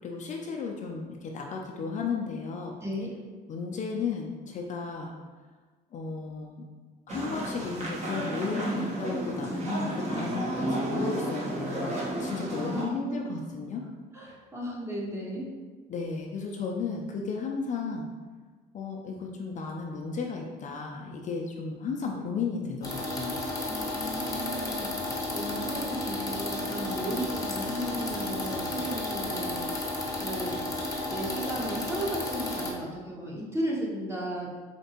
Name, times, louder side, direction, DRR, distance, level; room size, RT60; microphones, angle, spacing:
voice 1, 0.0-2.8 3.5-5.2 5.9-6.6 7.1-13.8 14.2-14.3 15.9-18.1 18.7-23.4, left 4 dB, 45° left, 0 dB, 0.5 m, -34 dB
voice 2, 2.8-3.1 12.4-13.4 14.1-15.5 23.7-24.9 25.3-29.6 30.2-30.6 31.1-34.5, equal, 15° right, -4 dB, 0.9 m, -35 dB
sound 1, 7.1-12.8, right 1 dB, 40° right, 1.1 m, -32 dB
sound 2, 22.8-32.7, left 1 dB, 20° left, 0.8 m, -32 dB
4.3 x 2.9 x 2.8 m, 1.4 s
cardioid pair, 110°, 17 cm